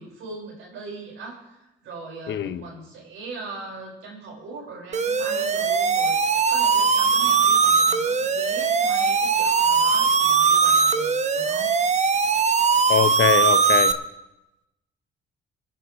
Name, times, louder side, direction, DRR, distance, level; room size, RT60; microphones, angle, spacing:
voice 1, 0.0-11.7, right 3 dB, 85° right, -2 dB, 5.0 m, -40 dB
voice 2, 2.3-2.6 12.9-13.9, left 9 dB, 70° left, 12 dB, 0.8 m, -22 dB
sound 1, 4.9-13.9, right 5 dB, 35° right, 0.8 m, -20 dB
25.0 x 10.5 x 3.1 m, 0.94 s
cardioid pair, 90°, 20 cm